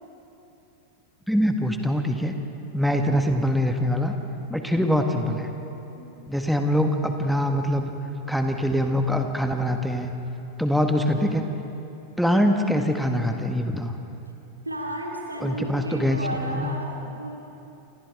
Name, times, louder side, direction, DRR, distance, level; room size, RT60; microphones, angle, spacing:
voice 1, 1.3-2.3 2.7-4.1 4.5-5.5 6.3-7.9 8.3-10.1 10.6-11.5 12.2-13.9 15.4-16.7, equal, ahead, 4 dB, 1.4 m, -23 dB
voice 2, 14.6-17.4, right 1 dB, 85° right, -1 dB, 3.4 m, -33 dB
29.0 x 27.0 x 3.5 m, 2.8 s
figure-of-eight pair, 90°, 0 cm